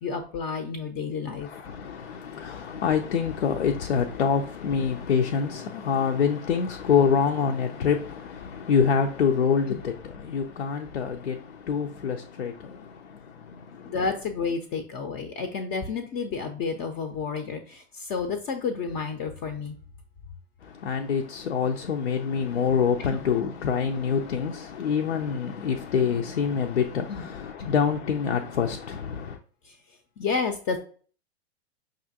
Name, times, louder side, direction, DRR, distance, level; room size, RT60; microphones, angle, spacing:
voice 1, 0.0-1.5 9.7-9.8 13.1-13.2 13.8-19.7 23.0-23.2 27.1-27.3 27.6-27.7 29.6-29.8 30.2-30.8, left 5 dB, 30° left, 0.5 m, -31 dB
voice 2, 1.4-12.8 20.8-29.4, left 6 dB, 85° left, 0.5 m, -26 dB
5.4 x 2.5 x 2.7 m
hypercardioid pair, 100°, 33 cm